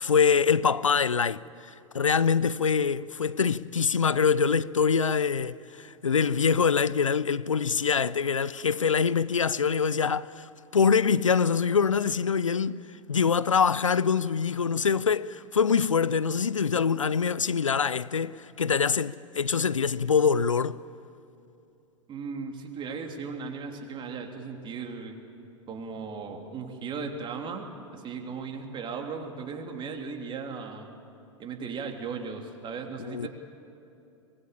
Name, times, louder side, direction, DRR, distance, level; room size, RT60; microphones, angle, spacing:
voice 1, 0.0-1.4 1.9-12.8 13.1-20.8 33.0-33.3, left 6 dB, 85° left, 0.5 m, -24 dB
voice 2, 22.1-25.1 25.7-27.7 27.9-30.9 31.4-33.3, right 5 dB, 30° right, 3.3 m, -37 dB
24.0 x 21.5 x 8.7 m
figure-of-eight pair, 90°, 16 cm